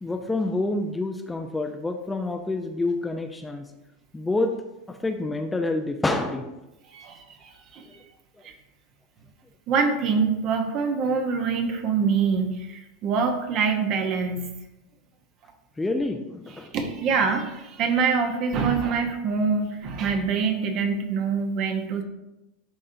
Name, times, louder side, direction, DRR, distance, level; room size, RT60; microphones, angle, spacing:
voice 1, 0.0-3.6 4.1-4.5 4.9-6.5 15.8-16.7, left 2 dB, 10° left, 5 dB, 0.5 m, -27 dB
voice 2, 6.9-7.9 8.4-8.5 9.7-14.5 16.7-22.0, right 5 dB, 50° right, 5 dB, 1.0 m, -25 dB
11.0 x 3.7 x 2.7 m, 0.95 s
hypercardioid pair, 95°, 0 cm